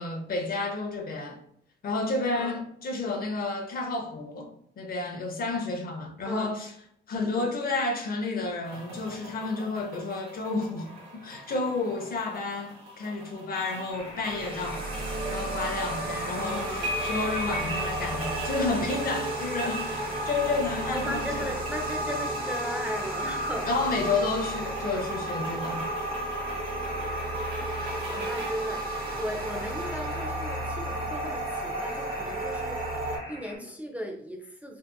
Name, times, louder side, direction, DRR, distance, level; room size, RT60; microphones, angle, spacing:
voice 1, 0.0-1.4 1.8-6.7 7.1-14.9 15.3-21.5 23.7-26.0, left 3 dB, 50° left, 0.6 m, -31 dB
voice 2, 7.1-7.5 16.3-16.9 20.9-23.7 28.1-28.9 29.2-34.8, equal, 5° right, 0.4 m, -37 dB
sound 1, 8.6-28.5, right 1 dB, 80° right, 1.0 m, -42 dB
sound 2, 13.9-33.6, left 1 dB, 75° left, 0.8 m, -42 dB
sound 3, 14.3-33.2, right 1 dB, 50° right, 0.8 m, -33 dB
2.7 x 2.4 x 2.2 m
cardioid pair, 90°, 20 cm